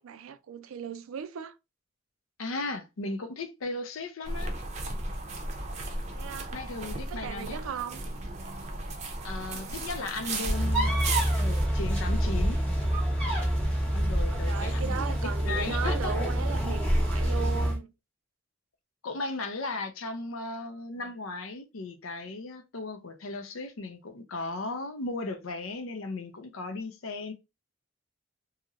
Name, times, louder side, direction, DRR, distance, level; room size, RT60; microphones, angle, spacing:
voice 1, 0.0-1.6 6.1-6.5 7.1-8.0 9.4-9.8 14.3-17.9, right 7 dB, 85° right, 0.4 m, -37 dB
voice 2, 2.4-4.5 6.5-7.6 9.2-12.6 13.9-14.9 15.2-16.1 19.0-27.3, left 3 dB, 85° left, 0.6 m, -36 dB
sound 1, 4.2-11.7, right 2 dB, 35° right, 0.5 m, -35 dB
sound 2, 10.5-17.8, right 1 dB, 5° left, 0.8 m, -27 dB
2.9 x 2.7 x 2.4 m
head